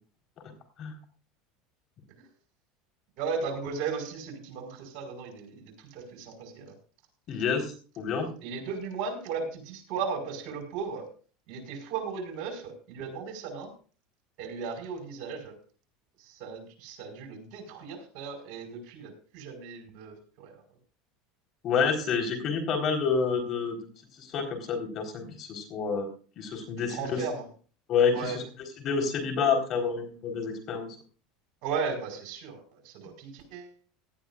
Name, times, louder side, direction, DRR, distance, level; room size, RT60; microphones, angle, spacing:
voice 1, 3.2-6.7 8.4-11.0 11.5-13.7 14.4-15.5 16.2-20.6 26.9-27.4 28.1-28.4 31.6-33.9, right 5 dB, 65° right, 4 dB, 5.2 m, -36 dB
voice 2, 7.3-8.3 21.6-23.8 24.2-26.1 26.4-27.2 27.9-28.4 28.8-30.9, left 5 dB, 45° left, 5 dB, 4.1 m, -28 dB
18.0 x 12.0 x 2.5 m, 0.38 s
supercardioid pair, 110°, 0 cm